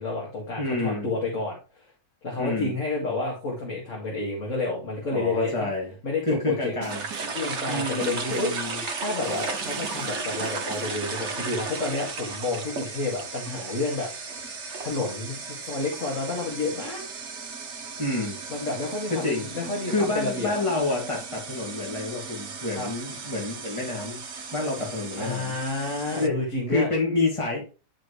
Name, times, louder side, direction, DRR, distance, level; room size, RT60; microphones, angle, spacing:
voice 1, 0.0-1.9 2.2-5.7 6.0-6.7 7.2-17.0 18.5-20.6 22.8-22.9 25.2-26.9, left 3 dB, 45° left, -2 dB, 2.6 m, -30 dB
voice 2, 0.6-1.1 2.4-2.8 5.1-5.9 6.2-7.0 7.7-8.8 18.0-18.4 19.1-19.5 19.9-24.2 24.5-25.6 26.2-26.4 26.7-27.6, left 2 dB, 20° left, -2 dB, 2.3 m, -28 dB
Snare drum, 6.8-7.5 8.0-8.7 9.2-11.1, right 10 dB, 85° right, 1.3 m, -41 dB
sound 1, 6.9-26.3, right 4 dB, 50° right, 1.1 m, -35 dB
10.5 x 5.1 x 3.2 m, 0.33 s
omnidirectional pair, 1.8 m